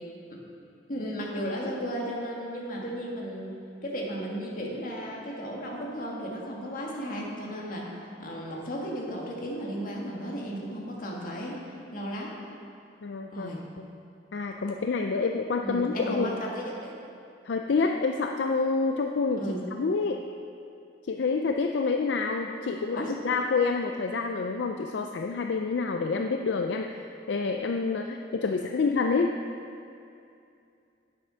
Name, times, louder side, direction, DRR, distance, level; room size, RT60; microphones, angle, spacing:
voice 1, 0.9-3.6 3.8-7.9 8.2-11.6 11.9-12.3 13.3-13.6 15.6-16.9 19.4-19.6 22.9-23.1, equal, 50° left, -2 dB, 1.7 m, -34 dB
voice 2, 13.0-13.5 13.8-13.9 14.3-16.3 17.5-19.5 19.8-20.2 21.1-27.0 27.3-29.3, left 4 dB, 70° left, 4 dB, 0.4 m, -28 dB
9.2 x 7.9 x 5.6 m, 2.5 s
head